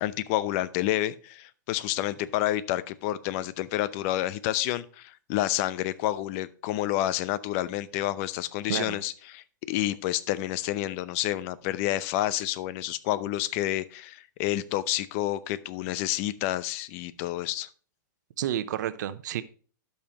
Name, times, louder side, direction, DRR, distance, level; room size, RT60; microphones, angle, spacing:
voice 1, 0.0-17.7, left 14 dB, 45° left, 16 dB, 0.6 m, -29 dB
voice 2, 8.7-9.0 18.4-19.4, right 11 dB, 65° right, 13 dB, 0.8 m, -30 dB
12.5 x 5.6 x 3.0 m, 0.41 s
hypercardioid pair, 130°, 10 cm